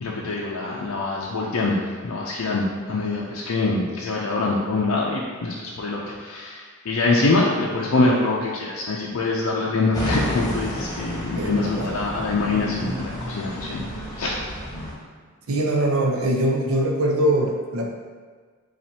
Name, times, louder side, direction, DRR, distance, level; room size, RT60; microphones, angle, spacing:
voice 1, 0.0-14.4, left 3 dB, 90° left, -4 dB, 0.5 m, -24 dB
sound 1, 9.9-14.9, equal, 20° left, 1.1 m, -31 dB
voice 2, 11.4-12.0 15.5-17.9, right 1 dB, 85° right, 1 dB, 0.7 m, -22 dB
7.3 x 2.5 x 2.8 m, 1.5 s
head